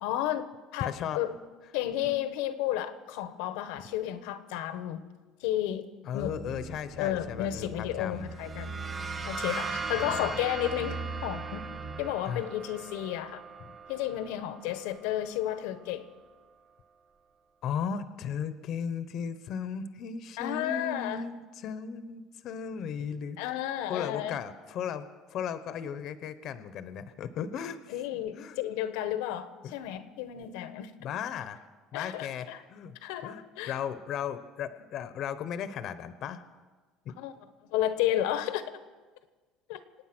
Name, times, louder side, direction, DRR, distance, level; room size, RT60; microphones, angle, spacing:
voice 1, 0.0-0.4 0.7-1.3 1.7-5.0 5.4-5.9 6.1-6.3 7.0-8.8 9.2-11.6 12.0-13.4 13.9-16.1 20.4-21.2 23.4-24.4 27.9-30.9 31.9-32.6 33.0-33.8 37.2-37.3 37.7-38.6 39.7-39.8, left 12 dB, 90° left, 11 dB, 1.1 m, -32 dB
voice 2, 0.8-1.2 6.0-8.3 9.9-10.3 12.3-12.4 17.6-23.4 23.9-28.0 28.3-28.6 29.6-29.7 31.0-31.6 31.9-32.9 33.2-36.4 37.0-37.1, left 7 dB, 50° left, 12 dB, 0.9 m, -36 dB
sound 1, 6.2-12.1, right 3 dB, 65° right, 2.9 m, -42 dB
sound 2, 8.2-15.8, right 4 dB, 25° right, 2.0 m, -39 dB
26.0 x 9.1 x 6.1 m, 1.3 s
cardioid pair, 145°, 0 cm